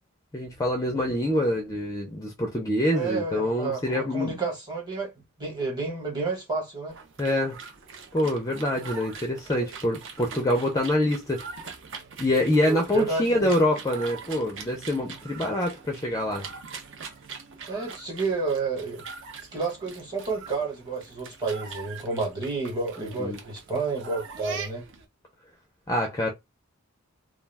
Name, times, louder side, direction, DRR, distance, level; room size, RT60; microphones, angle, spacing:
voice 1, 0.3-4.3 7.2-7.6 8.1-11.4 12.2-16.5 23.0-23.4 25.9-26.3, left 1 dB, 15° left, 0.4 m, -25 dB
voice 2, 2.9-7.0 12.7-13.5 17.7-19.0 19.5-24.8, right 4 dB, 20° right, 1.1 m, -30 dB
sound 1, 6.9-25.1, right 5 dB, 55° right, 0.6 m, -42 dB
2.3 x 2.2 x 3.3 m
head